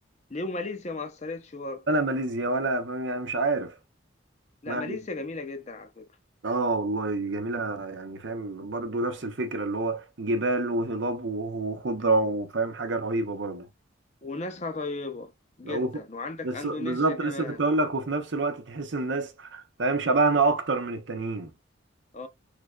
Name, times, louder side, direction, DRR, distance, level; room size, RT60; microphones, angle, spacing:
voice 1, 0.3-1.9 4.6-6.1 14.2-15.3 15.6-17.7 22.1-22.3, left 3 dB, 35° left, 0.6 m, -35 dB
voice 2, 1.9-3.7 4.7-5.0 6.4-13.7 15.6-15.9 16.4-21.5, right 2 dB, 65° right, 0.7 m, -27 dB
3.3 x 3.2 x 2.3 m
head